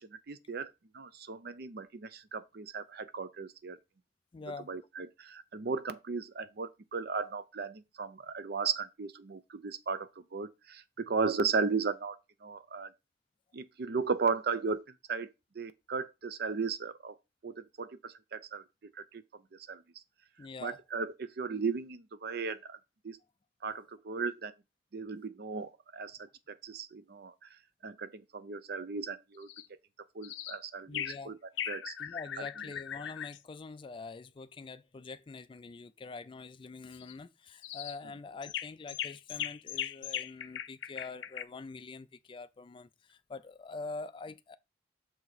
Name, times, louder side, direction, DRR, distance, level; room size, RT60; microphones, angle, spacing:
voice 1, 0.1-3.8 4.4-12.9 13.5-14.8 15.1-17.2 17.4-18.6 19.0-19.2 19.7-19.8 20.6-22.8 23.0-23.2 23.6-24.5 24.9-26.2 26.6-27.5 27.8-29.5 30.1-31.4 31.7-32.0, right 5 dB, 60° right, 0.5 m, -36 dB
voice 2, 4.3-4.7 20.4-20.8 30.8-31.3 32.0-44.6, left 4 dB, 25° left, 0.3 m, -45 dB
sound 1, 29.4-29.7 30.2-30.6 30.9-31.2 31.6-33.4 36.9-37.1 37.6-38.0 38.4-41.4, left 10 dB, 80° left, 0.5 m, -39 dB
6.4 x 4.5 x 4.1 m
head